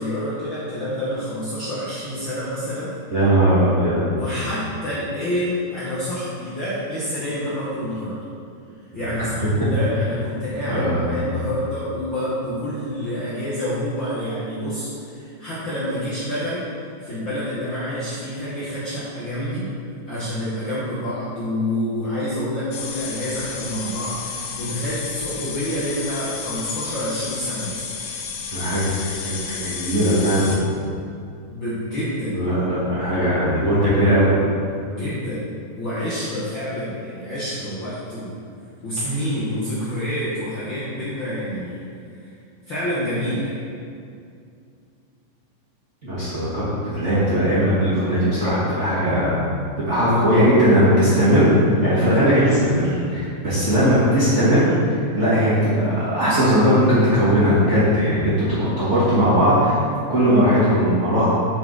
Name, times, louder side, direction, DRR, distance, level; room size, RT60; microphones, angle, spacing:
voice 1, 0.0-2.9 4.1-8.2 8.9-16.7 17.0-19.7 20.1-27.8 31.5-32.4 34.9-35.5 35.7-38.4 38.8-41.9 42.2-42.3 42.7-43.6, equal, 55° left, -10 dB, 1.4 m, -28 dB
voice 2, 3.1-4.0 8.9-9.0 9.6-9.7 10.7-11.0 28.5-30.5 32.3-34.3 46.0-49.4 49.8-51.5 51.8-59.8 60.1-61.3, equal, 30° right, -12 dB, 1.6 m, -19 dB
sound 1, 22.7-30.6, left 6 dB, 80° left, 2.1 m, -32 dB
7.3 x 5.8 x 3.9 m, 2.4 s
omnidirectional pair, 3.6 m